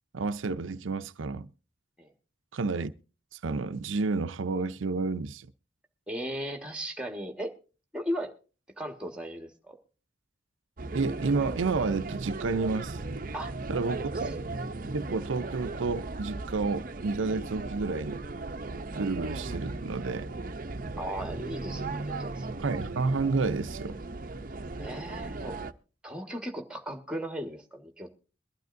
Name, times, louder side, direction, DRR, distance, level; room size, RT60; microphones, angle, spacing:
voice 1, 0.1-1.5 2.5-2.9 3.4-5.5 10.9-13.0 13.7-14.3 14.9-18.2 19.0-20.3 22.6-24.0, right 4 dB, 85° right, 0.6 m, -30 dB
voice 2, 6.1-7.5 7.9-8.3 8.8-9.8 13.3-13.5 14.1-14.3 21.0-22.5 24.8-25.6 26.0-28.2, equal, 5° right, 1.5 m, -37 dB
sound 1, 10.8-25.7, right 3 dB, 45° right, 0.6 m, -37 dB
22.5 x 12.0 x 2.6 m
head